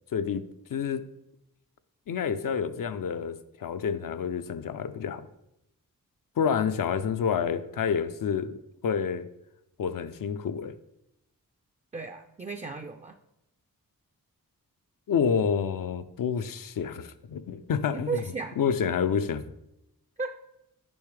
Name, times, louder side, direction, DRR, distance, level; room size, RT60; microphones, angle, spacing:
voice 1, 0.1-0.4 0.7-1.1 2.1-5.3 6.4-8.6 8.8-9.3 9.8-10.7 15.1-18.2 18.6-19.4, left 7 dB, 65° left, 11 dB, 0.5 m, -28 dB
voice 2, 11.9-13.2 17.9-18.6 20.2-20.4, right 5 dB, 20° right, 7 dB, 0.4 m, -34 dB
7.1 x 5.4 x 3.2 m, 0.84 s
cardioid pair, 50°, 36 cm